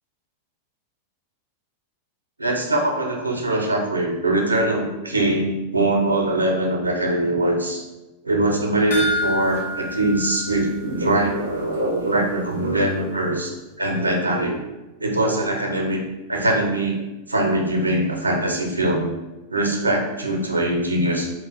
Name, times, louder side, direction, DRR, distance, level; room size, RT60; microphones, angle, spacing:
voice 1, 2.4-7.8 8.2-14.6 15.0-16.0 16.3-17.0 17.3-19.1 19.5-21.3, right 1 dB, 80° right, 1 dB, 0.6 m, -22 dB
sound 1, 8.9-11.4 11.7-11.8 12.3-12.4, equal, 65° left, 1.1 m, -28 dB
3.9 x 2.4 x 3.9 m, 1.1 s
figure-of-eight pair, 90°, 0 cm